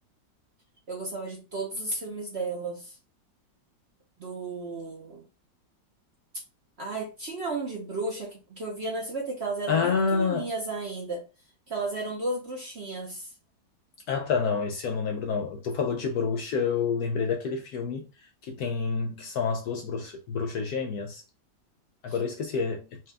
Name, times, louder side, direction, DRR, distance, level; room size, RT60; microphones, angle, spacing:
voice 1, 0.9-3.0 4.2-5.2 6.8-11.2 11.7-13.3, right 2 dB, 50° right, 0.9 m, -33 dB
voice 2, 9.7-10.5 14.1-21.2 22.0-23.0, left 5 dB, 70° left, 0.9 m, -28 dB
4.5 x 2.3 x 3.3 m
omnidirectional pair, 2.0 m